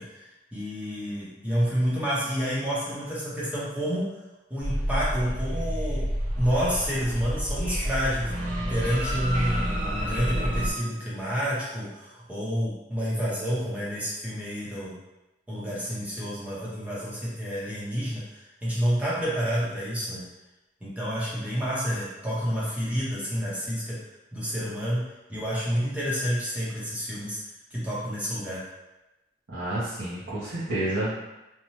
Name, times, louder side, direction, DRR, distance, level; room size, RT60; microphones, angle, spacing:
voice 1, 0.0-4.1 4.5-6.0 6.4-14.9 15.5-20.2 20.8-23.9 24.3-25.0 25.3-27.4 27.7-28.6, equal, 10° right, -9 dB, 0.8 m, -29 dB
sound 1, 4.6-10.7, equal, 40° right, 1.0 m, -29 dB
voice 2, 29.5-31.2, right 1 dB, 70° right, -13 dB, 0.8 m, -29 dB
2.8 x 2.2 x 3.0 m, 1.0 s
head